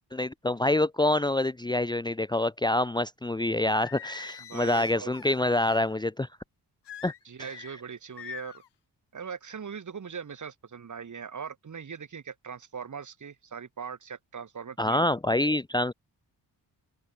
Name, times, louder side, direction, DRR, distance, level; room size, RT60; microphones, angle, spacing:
voice 1, 0.1-6.3 7.0-7.1 7.4-7.5 14.8-15.9, left 1 dB, 10° left, 0.8 m, -26 dB
Singing, 3.7-5.9 6.9-7.7 8.2-8.7, left 11 dB, 75° left, 3.7 m, -44 dB
voice 2, 4.4-5.1 7.2-8.6 9.1-15.1, right 6 dB, 45° right, 4.8 m, -40 dB
open air
cardioid pair, 110°, 41 cm